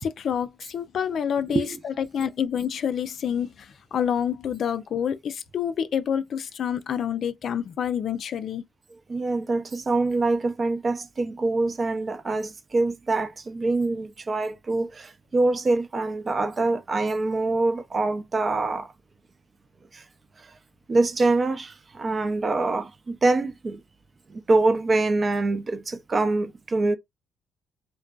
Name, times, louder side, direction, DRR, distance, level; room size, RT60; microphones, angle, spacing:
voice 1, 0.0-8.6, left 8 dB, 60° left, 0.3 m, -28 dB
voice 2, 9.1-18.9 19.9-20.0 20.4-20.5 20.9-23.8 24.3-27.0, right 3 dB, 35° right, 0.5 m, -25 dB
2.6 x 2.1 x 2.2 m
cardioid pair, 80°, 0 cm